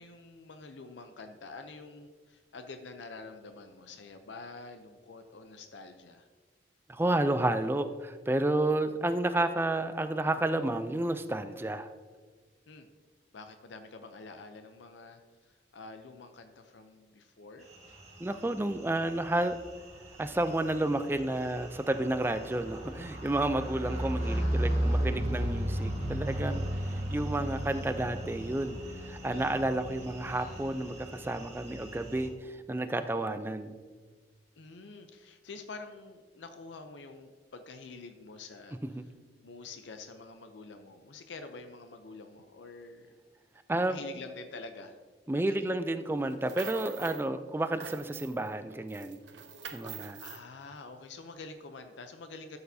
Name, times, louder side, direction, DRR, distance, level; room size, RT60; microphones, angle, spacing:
voice 1, 0.0-6.3 12.7-12.9 13.3-17.7 24.2-25.1 33.0-33.3 34.6-38.8 39.4-43.1 43.9-45.0 45.4-45.7 49.8-52.6, left 3 dB, 80° left, 7 dB, 0.6 m, -47 dB
voice 2, 6.9-11.9 18.2-19.6 20.2-28.8 29.0-33.8 38.9-39.0 43.7-44.0 45.3-49.2 49.7-50.2, right 1 dB, 10° right, 10 dB, 0.4 m, -31 dB
sound 1, 17.7-32.3, right 1 dB, 35° right, 1.6 m, -35 dB
sound 2, 46.3-47.3 47.6-48.5 48.9-50.4, right 7 dB, 75° right, 0.7 m, -45 dB
12.5 x 6.8 x 2.7 m, 1.5 s
head